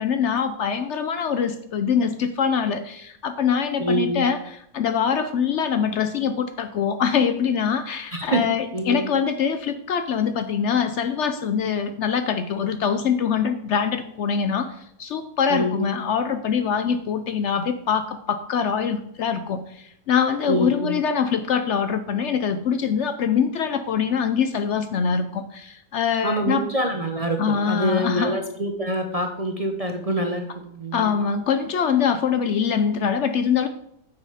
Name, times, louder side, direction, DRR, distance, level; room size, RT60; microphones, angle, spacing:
voice 1, 0.0-26.6 27.4-28.4 30.9-33.7, left 7 dB, 65° left, 9 dB, 0.8 m, -24 dB
voice 2, 3.8-4.3 8.1-8.4 8.7-9.1 15.5-15.9 20.5-21.0 26.2-30.5 30.7-31.1, right 1 dB, 35° right, 4 dB, 0.7 m, -25 dB
8.6 x 6.3 x 4.9 m, 0.73 s
omnidirectional pair, 1.5 m